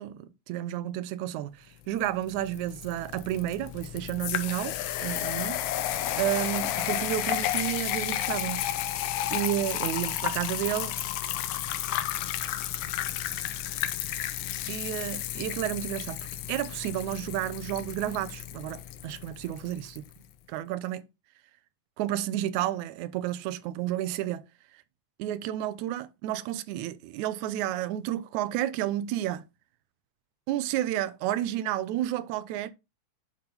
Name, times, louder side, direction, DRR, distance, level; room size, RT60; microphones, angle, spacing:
voice 1, 0.0-5.6 6.2-8.7 9.3-11.0 14.7-16.2 16.5-20.1 20.5-21.1 22.0-24.4 25.2-29.4 30.5-32.7, right 13 dB, 80° right, 1.9 m, -31 dB
sound 1, 2.0-20.0, left 12 dB, 75° left, 2.0 m, -32 dB
9.7 x 3.7 x 4.2 m
omnidirectional pair, 3.6 m